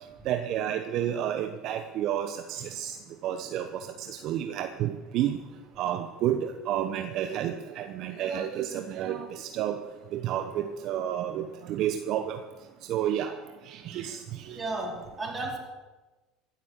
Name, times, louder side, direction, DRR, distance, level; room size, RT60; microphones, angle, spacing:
voice 1, 0.3-3.0 3.2-5.4 5.8-9.8 10.1-12.4 12.9-13.3 13.7-14.6, right 10 dB, 60° right, 7 dB, 0.9 m, -30 dB
voice 2, 14.5-15.6, right 2 dB, 25° right, 1 dB, 4.3 m, -33 dB
15.5 x 8.4 x 8.2 m, 1.2 s
hypercardioid pair, 85°, 0 cm